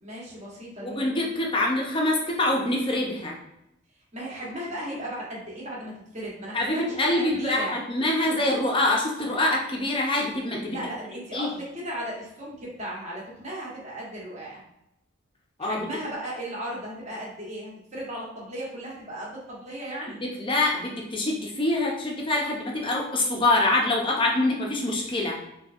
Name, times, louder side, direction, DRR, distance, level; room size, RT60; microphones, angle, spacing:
voice 1, 0.0-1.0 4.1-7.8 10.7-14.6 15.6-20.2, right 1 dB, 35° right, -5 dB, 1.2 m, -36 dB
voice 2, 0.8-3.4 6.5-10.8 11.3-11.5 15.6-15.9 20.2-25.4, left 2 dB, 25° left, -1 dB, 0.6 m, -25 dB
3.8 x 3.2 x 2.5 m, 0.84 s
head